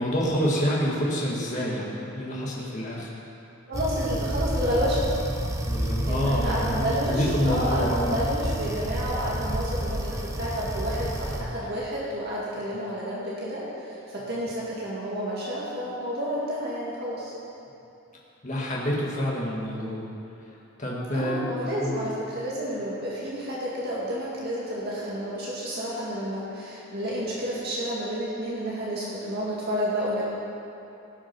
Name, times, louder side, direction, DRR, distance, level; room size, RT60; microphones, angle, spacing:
voice 1, 0.0-3.1 5.7-8.2 9.0-9.1 18.4-20.1 20.8-21.5 21.8-22.0, equal, 35° left, -5 dB, 1.8 m, -27 dB
sound 1, 3.7-11.4, right 1 dB, 15° right, 0.8 m, -29 dB
voice 2, 3.7-5.1 6.1-17.3 21.1-30.2, equal, 45° right, -6 dB, 2.1 m, -30 dB
17.0 x 6.2 x 6.0 m, 2.8 s
head